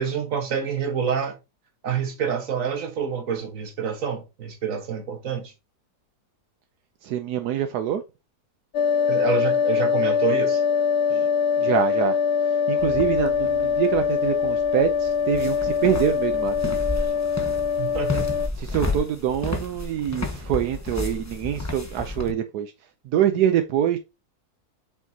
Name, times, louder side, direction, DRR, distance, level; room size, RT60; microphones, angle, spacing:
voice 1, 0.0-1.4 1.8-5.5 9.1-10.6 17.8-18.4, right 7 dB, 55° right, 1.7 m, -27 dB
voice 2, 7.0-8.0 11.1-11.3 11.6-12.2 12.4-16.5 18.6-22.7 23.0-24.0, right 10 dB, 80° right, 1.3 m, -25 dB
sound 1, 8.7-18.5, left 6 dB, 75° left, 0.6 m, -23 dB
sound 2, 12.8-22.3, left 2 dB, 15° left, 0.7 m, -32 dB
7.2 x 5.7 x 2.8 m
omnidirectional pair, 1.7 m